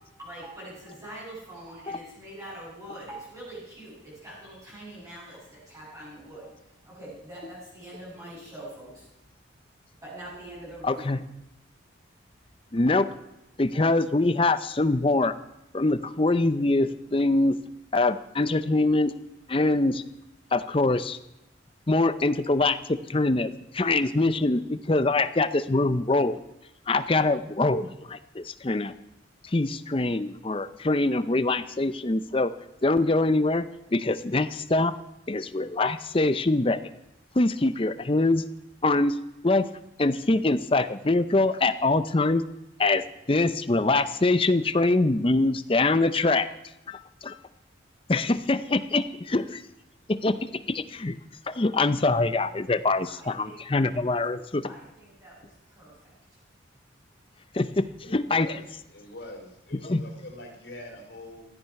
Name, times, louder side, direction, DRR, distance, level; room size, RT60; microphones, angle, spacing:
voice 1, 0.0-9.1 10.0-11.1 53.0-54.2 54.6-56.4, right 1 dB, 15° right, -8 dB, 6.6 m, -44 dB
voice 2, 10.8-11.2 12.7-13.1 13.6-15.3 15.7-17.6 17.9-19.1 19.5-20.0 20.5-21.2 21.9-26.4 26.9-28.9 29.4-32.5 32.8-34.9 35.3-36.9 37.3-38.4 38.8-39.2 39.4-39.7 40.0-42.4 42.8-46.5 46.9-47.4 48.1-49.6 50.1-51.2 51.5-54.7 57.5-58.5 59.9-60.0, left 2 dB, 30° left, 12 dB, 0.6 m, -24 dB
voice 3, 58.0-58.6 58.9-61.5, left 1 dB, 60° left, 2 dB, 3.6 m, -43 dB
16.0 x 13.5 x 5.9 m, 0.87 s
head